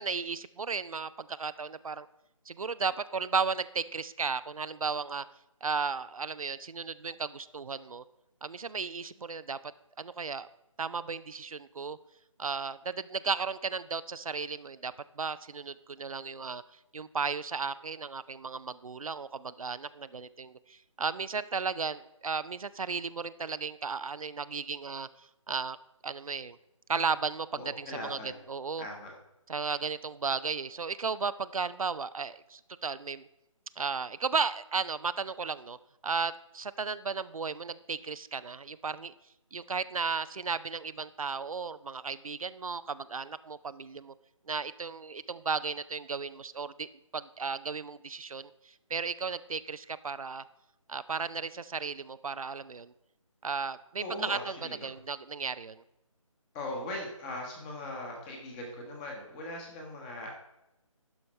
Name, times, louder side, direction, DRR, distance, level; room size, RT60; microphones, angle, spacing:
voice 1, 0.0-2.1 2.5-5.2 5.6-8.0 8.4-9.6 10.0-10.5 10.8-12.0 12.4-16.6 16.9-25.1 25.5-25.8 26.0-26.6 26.9-28.2 28.5-28.8 29.5-33.3 33.8-35.8 36.0-39.1 39.5-44.1 44.5-48.5 48.9-50.4 50.9-52.9 53.4-54.6 54.8-55.8, right 5 dB, 85° right, 15 dB, 0.5 m, -34 dB
voice 2, 27.5-28.4 28.8-29.1 54.0-54.9 56.5-60.4, left 1 dB, 15° left, 1 dB, 1.2 m, -40 dB
11.5 x 5.1 x 4.3 m, 0.91 s
figure-of-eight pair, 155°, 17 cm